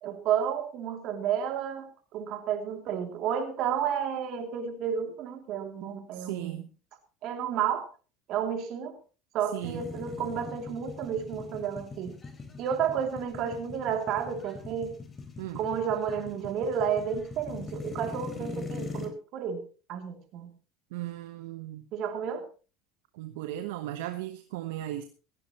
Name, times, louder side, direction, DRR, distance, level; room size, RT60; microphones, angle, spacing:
voice 1, 0.0-6.7 7.2-7.8 8.3-9.0 9.3-12.1 12.6-14.9 15.5-19.6 19.9-20.5 21.9-22.4, right 8 dB, 60° right, 6 dB, 2.8 m, -31 dB
voice 2, 6.1-6.7 9.5-9.8 15.4-15.6 20.9-21.8 23.1-25.0, right 14 dB, 80° right, 8 dB, 1.1 m, -36 dB
sound 1, 9.6-19.1, left 3 dB, 25° left, 3.9 m, -41 dB
17.0 x 15.0 x 3.0 m, 0.35 s
hypercardioid pair, 80°, 0 cm